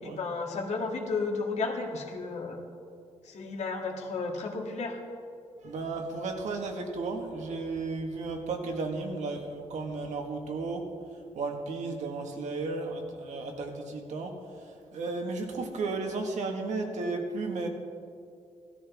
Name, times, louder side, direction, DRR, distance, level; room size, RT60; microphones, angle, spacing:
voice 1, 0.0-2.6 3.2-5.0, left 4 dB, 75° left, 2 dB, 1.8 m, -33 dB
voice 2, 5.6-10.9 11.3-14.4 14.9-17.7, right 3 dB, 85° right, 3 dB, 1.7 m, -34 dB
16.5 x 13.0 x 3.6 m, 2.3 s
wide cardioid pair, 140°, 12 cm